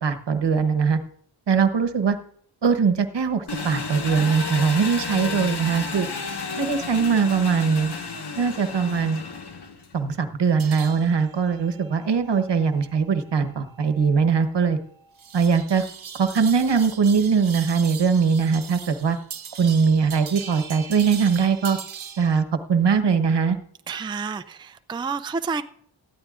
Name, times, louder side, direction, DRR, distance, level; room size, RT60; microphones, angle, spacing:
voice 1, 0.0-1.0 1.5-2.2 2.6-6.1 6.6-7.9 8.4-9.2 9.9-14.8 15.3-15.8 16.2-19.2 19.6-21.8 22.2-23.6, right 6 dB, 65° right, 9 dB, 1.1 m, -21 dB
Engine, 3.5-10.0, left 4 dB, 60° left, 1.3 m, -32 dB
sound 1, 10.6-22.4, right 7 dB, 90° right, 0.8 m, -40 dB
voice 2, 23.9-25.6, right 5 dB, 10° right, 10 dB, 0.4 m, -29 dB
18.5 x 13.5 x 2.5 m, 0.66 s
wide cardioid pair, 65°, 45 cm